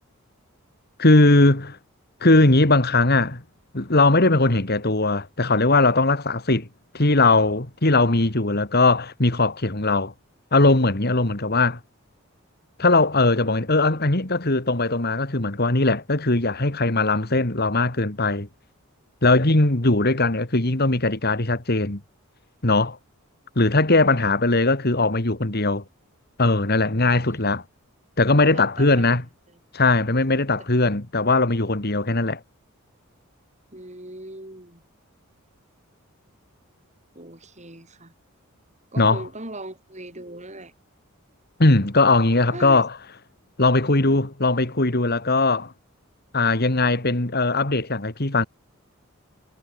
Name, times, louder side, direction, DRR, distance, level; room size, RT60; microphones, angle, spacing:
voice 1, 1.0-1.8 2.2-3.4 3.7-6.7 6.9-10.1 10.5-11.8 12.8-18.5 19.2-22.0 22.6-23.0 23.6-25.8 26.4-27.6 28.2-29.2 29.7-32.4 39.0-39.2 41.6-42.9 43.6-45.7 46.3-48.5, left 2 dB, 45° left, 2.3 m, -19 dB
voice 2, 27.1-27.4 28.5-29.1 33.7-34.8 37.1-38.1 38.9-40.7 42.5-42.8, right 1 dB, 35° right, 8.0 m, -39 dB
head